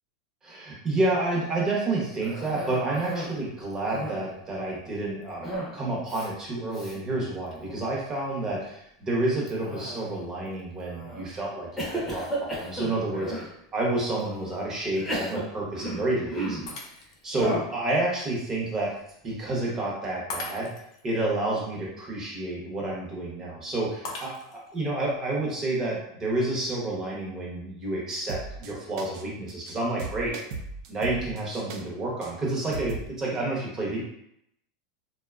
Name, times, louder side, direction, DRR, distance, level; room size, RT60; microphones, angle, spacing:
voice 1, 0.4-16.7 17.2-18.9 19.2-20.7 21.0-30.3 30.9-34.0, right 2 dB, 20° right, -3 dB, 0.8 m, -29 dB
Cough, 2.2-3.4 3.7-4.4 5.4-5.8 6.1-6.3 6.7-7.0 7.5-7.9 9.5-10.3 10.9-11.3 11.8-13.5 14.2-14.3 14.9-16.7 17.3-17.8, equal, 5° left, 0.6 m, -34 dB
Shatter, 16.7-17.4 17.9-18.0 20.3-21.0 24.0-24.8, left 3 dB, 80° left, 0.5 m, -38 dB
sound 1, 28.1-28.7 29.0-29.2 29.5-29.7 30.0-31.8 32.2-32.3 32.7-33.1, right 4 dB, 60° right, 0.4 m, -37 dB
2.7 x 2.2 x 2.3 m, 0.76 s
supercardioid pair, 145°, 3 cm